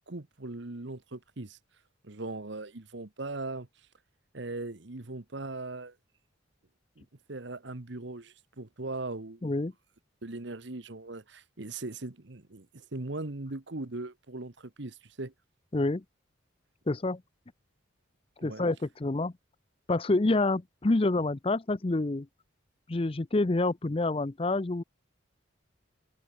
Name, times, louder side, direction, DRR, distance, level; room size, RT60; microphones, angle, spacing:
voice 1, 0.0-1.6 2.0-3.7 4.3-5.9 7.0-9.4 10.2-15.3 18.4-18.6, right 2 dB, 60° right, 1.2 m, -39 dB
voice 2, 9.4-9.7 15.7-16.0 16.9-17.2 18.4-19.3 19.9-22.3 22.9-24.8, left 2 dB, 30° left, 0.6 m, -27 dB
open air
head